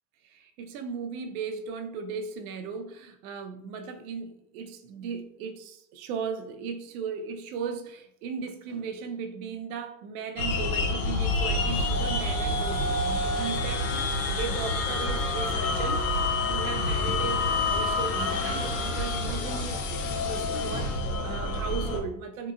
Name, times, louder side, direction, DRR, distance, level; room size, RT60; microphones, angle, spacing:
voice 1, 0.2-16.0 16.5-19.8 20.2-22.5, right 5 dB, 60° right, 0.6 m, -36 dB
sound 1, 10.4-22.0, left 2 dB, 40° left, 0.4 m, -28 dB
3.7 x 2.7 x 2.4 m
supercardioid pair, 140°, 49 cm